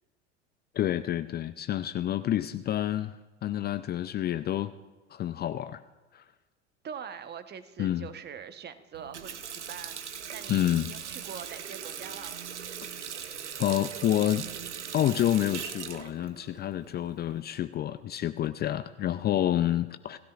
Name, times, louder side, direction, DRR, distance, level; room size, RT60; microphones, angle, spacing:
voice 1, 0.7-4.7 5.1-5.8 6.1-6.2 7.8-8.1 10.5-10.9 13.0-13.1 13.6-14.5 14.9-20.2, left 12 dB, 30° left, 12 dB, 0.5 m, -28 dB
voice 2, 6.8-10.0 10.3-12.4 16.9-17.1, right 7 dB, 30° right, 10 dB, 1.1 m, -43 dB
Water tap faucet, 8.9-17.4, right 8 dB, 80° right, 1.1 m, -40 dB
27.0 x 16.0 x 2.5 m, 1.2 s
hypercardioid pair, 80°, 35 cm